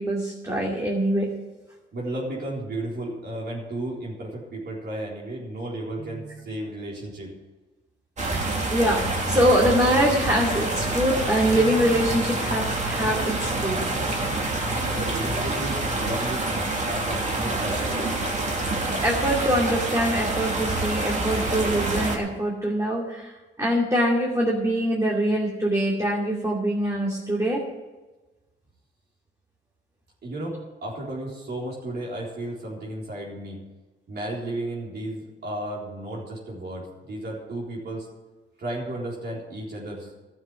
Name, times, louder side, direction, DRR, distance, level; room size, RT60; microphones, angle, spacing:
voice 1, 0.0-1.3 8.7-13.9 19.0-27.6, equal, 15° right, -3 dB, 2.6 m, -24 dB
voice 2, 1.9-7.3 14.7-16.5 16.9-18.1 30.2-33.6 34.1-38.1 38.6-40.1, right 1 dB, 55° right, -3 dB, 3.9 m, -33 dB
sound 1, 8.2-22.2, right 2 dB, 35° right, 2.7 m, -27 dB
12.5 x 7.4 x 9.5 m, 1.2 s
cardioid pair, 90°, 20 cm